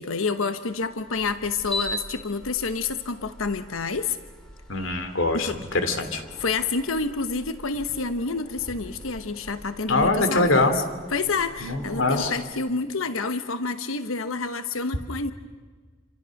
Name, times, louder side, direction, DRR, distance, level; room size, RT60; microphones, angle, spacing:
voice 1, 0.0-4.2 5.3-5.6 6.4-10.8 11.1-15.3, left 4 dB, 90° left, 10 dB, 1.1 m, -28 dB
sound 1, 0.8-12.3, left 1 dB, 5° left, 4.3 m, -41 dB
voice 2, 4.7-6.2 9.9-10.8 11.6-12.3, left 2 dB, 70° left, 8 dB, 3.1 m, -23 dB
28.0 x 27.0 x 6.5 m, 1.5 s
head